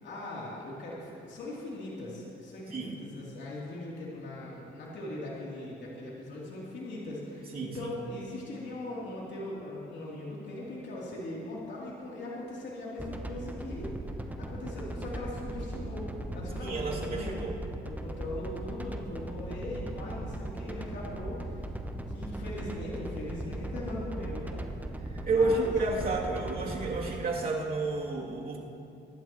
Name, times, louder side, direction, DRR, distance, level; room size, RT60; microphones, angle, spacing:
voice 1, 0.0-13.9 14.4-16.1 16.3-17.4 17.8-21.7 22.1-25.7, left 1 dB, 65° left, -6 dB, 3.2 m, -40 dB
sound 1, 13.0-27.1, right 1 dB, 10° right, 0.9 m, -38 dB
voice 2, 16.6-17.5 25.2-28.6, right 3 dB, 50° right, -3 dB, 2.8 m, -30 dB
23.0 x 11.5 x 3.1 m, 2.6 s
cardioid pair, 90°, 20 cm